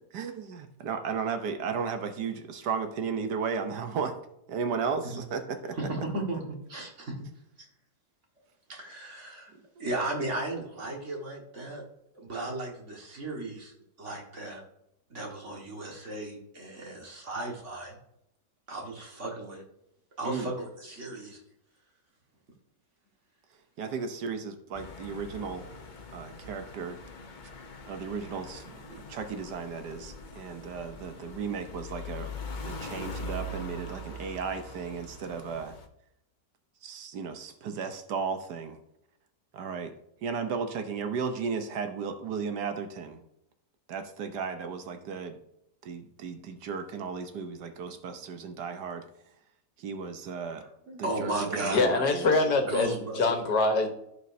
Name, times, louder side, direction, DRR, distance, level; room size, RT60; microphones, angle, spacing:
voice 1, 0.1-4.1 4.5-5.8 9.5-9.9 20.2-20.5 23.8-25.7 26.1-27.0 27.9-32.3 32.6-35.7 36.8-38.8 39.5-39.9 40.2-43.2 43.9-45.4 45.8-49.1 49.8-50.6 51.0-52.4, right 5 dB, 75° right, 7 dB, 1.5 m, -35 dB
voice 2, 5.8-6.4 6.7-7.2 8.7-9.5 9.8-11.8 12.2-14.6 15.1-18.0 18.7-19.6 20.2-21.4 50.9-51.9 52.4-53.4, right 2 dB, 45° right, 0 dB, 2.0 m, -35 dB
sound 1, 24.7-35.9, left 2 dB, 40° left, 0.7 m, -42 dB
voice 3, 51.7-53.9, left 3 dB, 75° left, 5 dB, 1.8 m, -24 dB
15.0 x 5.3 x 2.7 m, 0.79 s
omnidirectional pair, 1.8 m